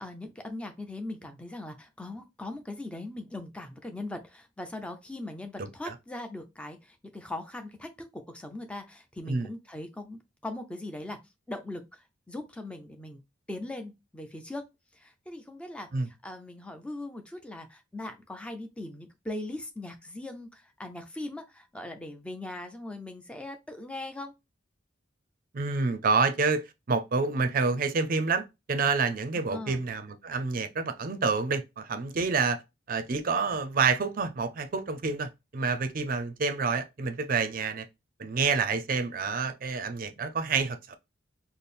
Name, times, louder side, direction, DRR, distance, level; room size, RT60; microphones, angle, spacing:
voice 1, 0.0-11.2 11.5-13.2 13.5-14.6 14.9-24.3 29.5-29.8, left 2 dB, 5° left, 0.5 m, -40 dB
voice 2, 25.5-32.6 32.9-37.9 38.2-41.0, right 4 dB, 50° right, 0.5 m, -28 dB
4.2 x 2.0 x 3.3 m
head